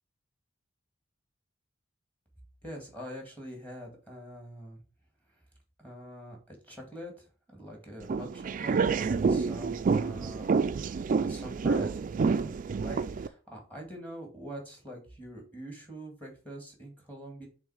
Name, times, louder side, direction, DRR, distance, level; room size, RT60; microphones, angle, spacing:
voice 1, 2.6-4.8 5.8-10.7 11.2-12.5 12.8-17.5, equal, 10° left, 1 dB, 2.0 m, -44 dB
sound 1, 8.0-13.3, right 5 dB, 40° right, 0.3 m, -28 dB
7.3 x 3.2 x 4.8 m, 0.38 s
head